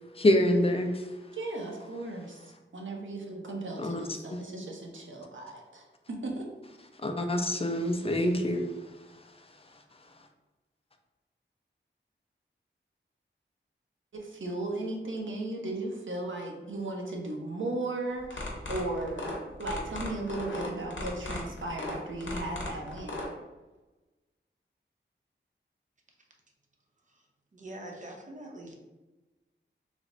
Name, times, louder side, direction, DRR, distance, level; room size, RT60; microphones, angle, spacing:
voice 1, 0.1-0.9 2.0-2.1 3.8-4.4 7.0-8.6, left 1 dB, 30° left, 5 dB, 0.4 m, -26 dB
voice 2, 1.3-2.4 2.7-6.4 14.1-23.2, right 2 dB, 80° right, 0 dB, 0.7 m, -36 dB
sound 1, 18.2-23.3, left 2 dB, 75° left, 0.8 m, -37 dB
voice 3, 27.5-28.7, right 1 dB, 40° right, 1 dB, 0.6 m, -43 dB
3.3 x 2.0 x 3.8 m, 1.1 s
wide cardioid pair, 80°, 20 cm